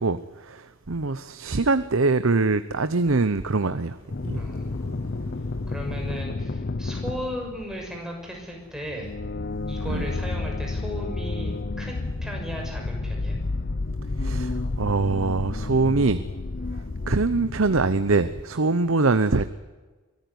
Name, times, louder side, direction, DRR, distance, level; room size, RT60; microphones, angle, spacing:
voice 1, 0.0-4.0 4.3-4.4 9.9-10.1 14.2-16.2 17.1-19.5, right 3 dB, 75° right, 12 dB, 0.9 m, -23 dB
sound 1, 3.2-9.0, left 1 dB, 15° left, 6.7 m, -53 dB
sound 2, 4.1-7.8 8.8-18.4, left 3 dB, 50° left, 0.7 m, -31 dB
voice 2, 4.3-4.9 5.7-9.1 9.7-13.4, equal, 5° right, 0 dB, 6.5 m, -36 dB
24.0 x 15.0 x 9.7 m, 1.3 s
head